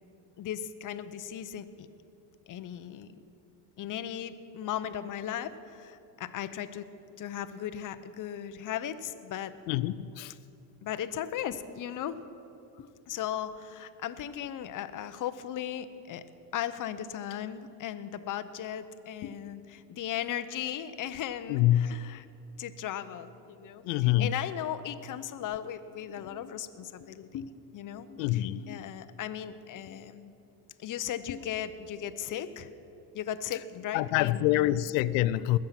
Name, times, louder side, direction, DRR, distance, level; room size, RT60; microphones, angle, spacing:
voice 1, 0.4-1.9 2.5-3.1 3.8-6.9 7.2-9.5 10.8-12.2 12.8-16.2 16.5-22.3 22.6-30.3 30.8-32.7 33.1-34.8, left 10 dB, 40° left, 0.8 m, -37 dB
voice 2, 9.7-10.3 21.5-21.9 23.8-24.3 28.2-28.6 33.9-35.6, left 14 dB, 80° left, 0.6 m, -26 dB
20.5 x 7.6 x 5.9 m
supercardioid pair, 105°, 49 cm